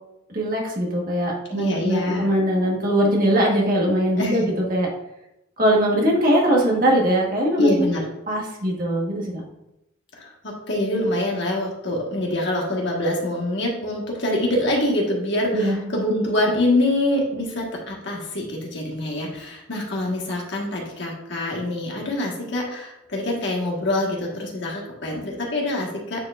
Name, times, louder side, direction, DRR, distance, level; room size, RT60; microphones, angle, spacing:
voice 1, 0.3-4.9 5.6-7.9 8.3-9.4 15.5-15.8, equal, 40° right, -2 dB, 1.3 m, -21 dB
voice 2, 1.5-2.2 4.2-4.4 7.6-8.0 10.2-26.2, left 1 dB, 55° left, -1 dB, 1.5 m, -25 dB
9.4 x 4.6 x 2.5 m, 0.87 s
head